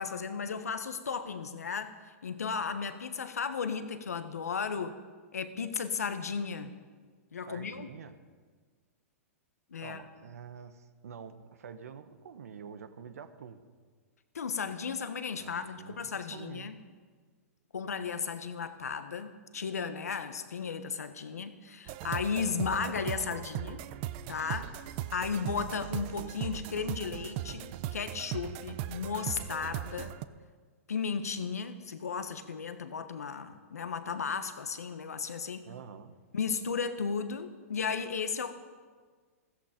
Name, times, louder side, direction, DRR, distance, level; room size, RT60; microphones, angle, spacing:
voice 1, 0.0-5.0 5.3-6.7 7.3-7.9 9.7-10.0 14.3-16.8 17.7-23.9 24.3-24.7 25.1-30.2 30.9-35.7 36.3-38.5, left 6 dB, 90° left, 10 dB, 1.2 m, -35 dB
voice 2, 7.4-8.2 9.8-13.6 15.4-16.7 35.6-36.2, right 7 dB, 75° right, 10 dB, 1.3 m, -47 dB
sound 1, 21.9-30.3, right 12 dB, 45° right, 0.7 m, -38 dB
15.0 x 14.0 x 5.2 m, 1.5 s
hypercardioid pair, 120°, 8 cm